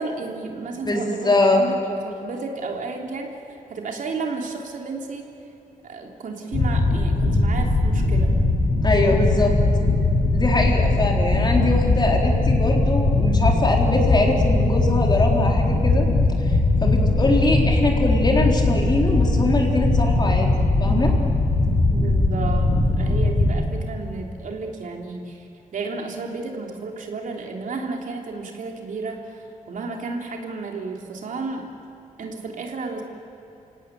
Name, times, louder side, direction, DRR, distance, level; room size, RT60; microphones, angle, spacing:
voice 1, 0.0-3.3 3.7-5.2 5.8-8.3 21.9-25.5 25.7-31.7 32.2-33.0, right 3 dB, 70° right, 1 dB, 3.2 m, -32 dB
voice 2, 0.8-1.6 8.8-9.6 10.3-16.1 16.4-16.5 16.8-20.5 20.8-21.1, left 2 dB, 30° left, 0 dB, 4.0 m, -22 dB
sound 1, 6.5-23.5, left 2 dB, 70° left, 5.9 m, -20 dB
29.5 x 17.0 x 9.2 m, 2.9 s
wide cardioid pair, 115°, 14 cm